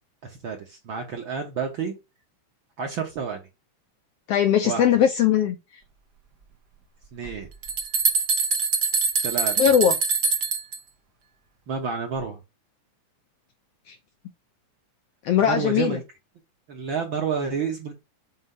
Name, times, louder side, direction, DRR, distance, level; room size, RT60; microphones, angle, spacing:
voice 1, 0.2-1.9 2.8-3.4 4.6-5.0 7.1-7.5 9.2-9.5 11.7-12.4 15.4-16.0 16.7-17.9, right 6 dB, 60° right, 1.4 m, -29 dB
voice 2, 4.3-5.6 9.6-9.9 13.9-14.0 15.2-16.0, left 9 dB, 75° left, 1.5 m, -20 dB
sound 1, 7.3-7.4 7.6-10.8, right 5 dB, 80° right, 0.9 m, -24 dB
7.9 x 2.8 x 5.4 m
omnidirectional pair, 3.4 m